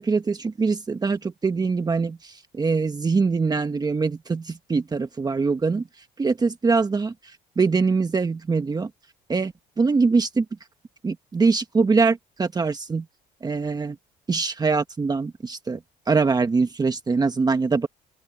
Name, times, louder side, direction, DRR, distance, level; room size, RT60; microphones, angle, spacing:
voice 1, 0.0-8.9 9.3-10.4 11.0-13.1 13.4-14.0 14.3-15.8 16.1-17.9, right 4 dB, 25° right, 1.3 m, -23 dB
open air
cardioid pair, 110°, 17 cm